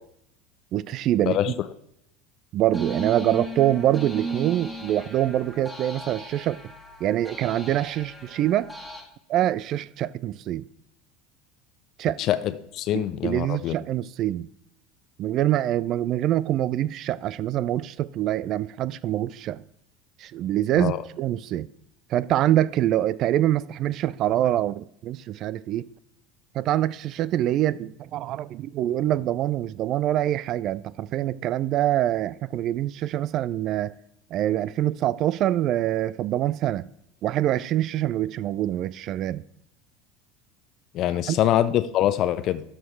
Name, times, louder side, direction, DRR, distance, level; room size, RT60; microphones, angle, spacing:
voice 1, 0.7-1.5 2.5-6.6 7.0-8.7 9.3-10.7 12.0-12.2 12.9-14.5 15.2-19.6 20.2-21.7 22.1-25.8 26.5-33.9 34.3-36.9 37.2-39.4 41.3-41.4, right 13 dB, 45° right, 0.3 m, -25 dB
sound 1, 2.7-9.0, right 2 dB, ahead, 2.2 m, -36 dB
voice 2, 12.2-13.7 20.8-21.0 40.9-42.6, left 12 dB, 45° left, 0.5 m, -24 dB
12.5 x 4.5 x 4.5 m
figure-of-eight pair, 75°, 0 cm